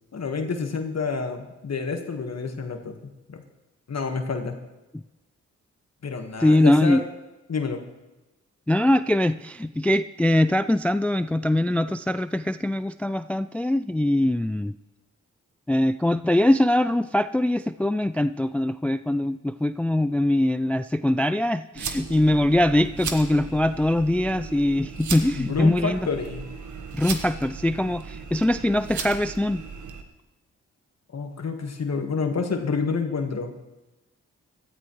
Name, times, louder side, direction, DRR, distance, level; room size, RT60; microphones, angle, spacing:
voice 1, 0.1-3.4 3.9-4.6 6.0-7.0 7.5-7.8 25.3-26.5 31.1-33.5, left 4 dB, 55° left, 5 dB, 1.5 m, -29 dB
voice 2, 6.4-7.0 8.7-14.7 15.7-26.1 26.9-29.6, left 1 dB, 5° left, 13 dB, 0.3 m, -22 dB
sound 1, 21.8-30.0, right 5 dB, 65° right, 1.4 m, -36 dB
17.0 x 13.5 x 3.1 m, 1.1 s
cardioid pair, 50°, 31 cm